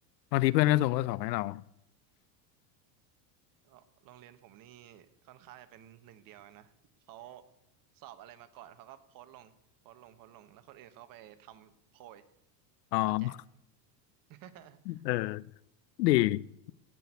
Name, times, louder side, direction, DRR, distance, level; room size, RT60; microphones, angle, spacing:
voice 1, 0.3-1.6 12.9-13.3 14.9-15.5 16.0-16.5, left 17 dB, 85° left, 0.6 m, -27 dB
voice 2, 3.6-6.7 7.1-7.5 7.9-9.5 9.8-12.2 13.0-13.4 14.3-15.0, right 12 dB, 45° right, 1.3 m, -53 dB
16.5 x 6.3 x 9.5 m
supercardioid pair, 130°, 49 cm